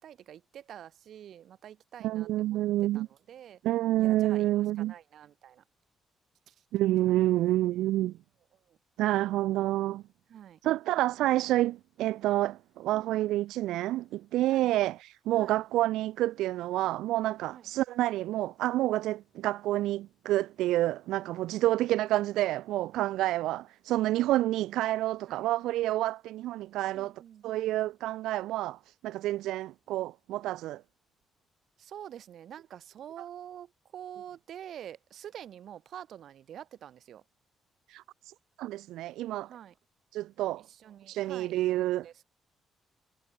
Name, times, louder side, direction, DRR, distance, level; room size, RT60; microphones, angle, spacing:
voice 1, 0.0-2.6 2.9-3.6 4.0-5.6 6.5-6.6 7.1-7.4 8.5-8.8 10.3-10.6 12.9-13.2 14.5-14.7 15.3-15.6 17.5-17.7 25.3-25.5 26.9-27.5 31.8-37.2 39.5-39.8 40.6-42.2, right 10 dB, 70° right, 7.1 m, -47 dB
voice 2, 2.0-3.1 3.6-4.9 6.7-8.1 9.0-10.0 10.6-27.1 27.4-30.8 37.9-39.5 40.1-40.6 41.1-42.1, right 15 dB, 90° right, 0.5 m, -28 dB
cardioid pair, 90°, 0 cm